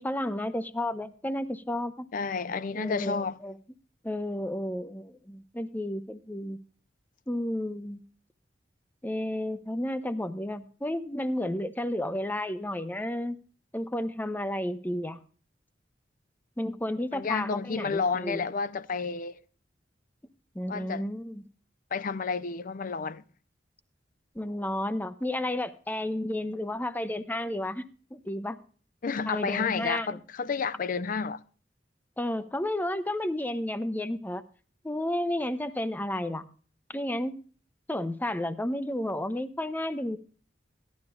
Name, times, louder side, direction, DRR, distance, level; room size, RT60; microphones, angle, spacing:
voice 1, 0.0-2.1 2.7-3.6 4.0-6.6 7.3-8.0 9.0-13.4 13.7-15.2 16.6-18.4 20.5-21.4 24.3-27.8 28.1-28.6 29.3-30.1 32.2-34.4 34.8-36.5 36.9-37.4 37.9-40.2, left 1 dB, 10° left, 0.7 m, -32 dB
voice 2, 2.1-3.4 17.1-19.4 20.7-21.0 21.9-23.2 29.0-31.4, left 5 dB, 50° left, 0.5 m, -31 dB
16.5 x 11.5 x 2.3 m
head